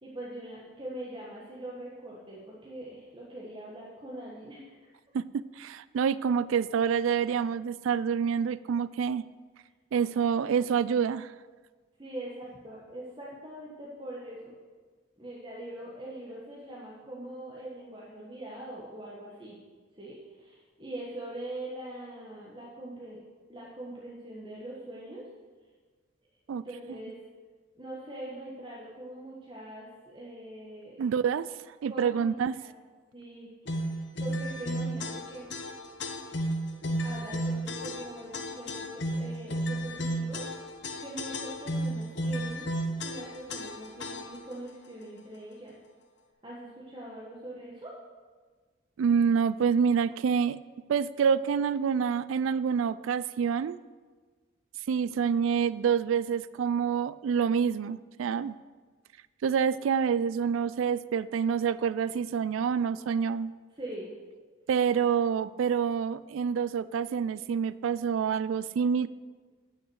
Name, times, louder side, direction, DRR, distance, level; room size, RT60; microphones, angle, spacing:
voice 1, 0.0-4.7 12.0-14.6 15.2-19.6 20.0-23.2 23.5-25.2 26.5-27.2 27.8-31.1 31.9-32.7 33.1-33.5 33.8-35.5 37.0-40.4 41.0-42.6 43.0-45.7 46.4-47.9 63.7-64.1, right 1 dB, 25° right, -5 dB, 1.4 m, -42 dB
voice 2, 5.1-9.2 9.9-11.3 26.5-26.6 31.0-31.5 31.8-32.5 49.0-50.6 50.9-53.8 54.9-58.5 59.4-63.5 64.7-69.1, right 7 dB, 85° right, 17 dB, 0.3 m, -27 dB
sound 1, 33.7-44.5, equal, 60° left, 1.0 m, -33 dB
9.7 x 6.2 x 8.0 m, 1.4 s
head